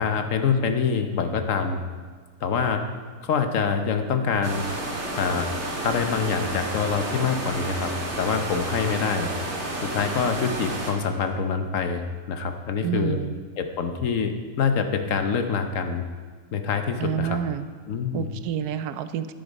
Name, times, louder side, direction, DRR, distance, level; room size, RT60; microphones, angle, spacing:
voice 1, 0.0-1.8 2.4-2.8 3.2-4.7 5.2-5.5 5.8-7.9 8.2-9.3 9.8-12.0 12.3-13.2 13.6-16.0 16.5-17.4 17.9-18.3, left 6 dB, 65° left, 7 dB, 1.1 m, -25 dB
sound 1, 4.4-10.9, right 1 dB, 50° right, 2.0 m, -31 dB
voice 2, 12.8-13.4 17.0-17.7 18.1-19.3, right 9 dB, 90° right, 12 dB, 1.2 m, -28 dB
10.0 x 8.7 x 5.3 m, 1.5 s
omnidirectional pair, 1.6 m